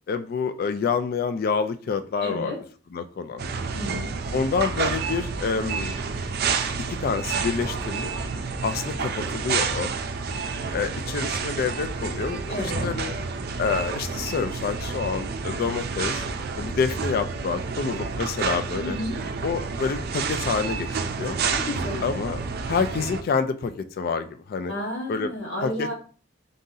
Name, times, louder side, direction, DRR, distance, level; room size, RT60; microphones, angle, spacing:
voice 1, 0.1-2.5 2.9-3.4 4.3-6.0 6.9-8.1 8.6-9.9 10.7-13.1 13.6-16.3 16.6-19.0 19.4-21.4 22.0-24.7 25.1-25.3 25.6-25.9, left 5 dB, 50° left, 10 dB, 0.3 m, -28 dB
voice 2, 2.2-2.6 3.7-4.1 12.5-12.9 18.8-19.2 21.5-22.1 24.7-25.9, left 1 dB, 75° left, -2 dB, 1.3 m, -32 dB
sound 1, 3.4-23.2, right 5 dB, 55° right, 0.5 m, -29 dB
3.9 x 2.7 x 3.8 m, 0.39 s
head